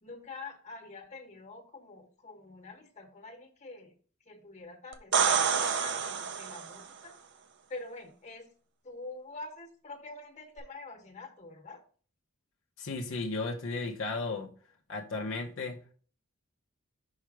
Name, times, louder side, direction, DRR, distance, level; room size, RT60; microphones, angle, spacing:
voice 1, 0.0-3.9 4.3-7.2 7.7-8.5 8.8-11.8, left 3 dB, 35° left, 4 dB, 1.3 m, -46 dB
sound 1, 4.9-6.9 10.6-10.7, right 6 dB, 55° right, 0.7 m, -28 dB
voice 2, 12.8-14.5 14.9-15.9, left 3 dB, 65° left, 0 dB, 0.8 m, -35 dB
5.6 x 4.5 x 4.8 m, 0.42 s
head